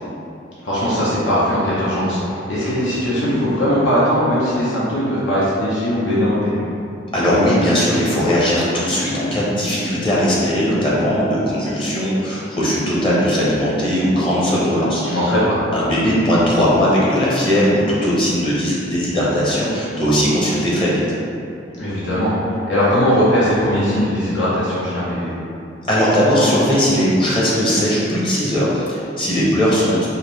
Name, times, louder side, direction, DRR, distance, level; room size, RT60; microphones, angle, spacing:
voice 1, 0.6-6.6 15.0-15.6 21.8-25.3, equal, 80° left, -9 dB, 0.9 m, -19 dB
voice 2, 7.1-15.3 15.7-21.0 25.9-30.1, equal, 30° left, -7 dB, 0.8 m, -18 dB
4.8 x 2.6 x 3.2 m, 2.6 s
head